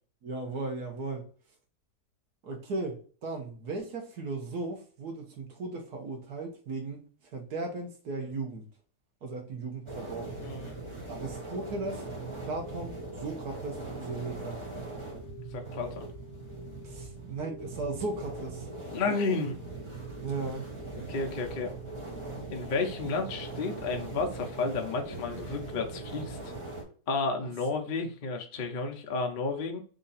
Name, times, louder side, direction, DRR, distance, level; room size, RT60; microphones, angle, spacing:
voice 1, 0.2-1.3 2.4-7.0 7.3-8.6 9.2-10.4 11.1-12.0 12.4-14.6 16.8-18.7 20.2-20.7 27.4-27.5, right 3 dB, 65° right, 1.7 m, -36 dB
sound 1, 9.9-26.8, right 2 dB, 20° right, 1.2 m, -40 dB
voice 2, 10.4-10.7 15.5-16.1 18.9-19.6 21.0-21.7 22.5-26.4 27.1-29.8, left 4 dB, 45° left, 0.6 m, -32 dB
3.8 x 2.9 x 4.0 m
omnidirectional pair, 1.8 m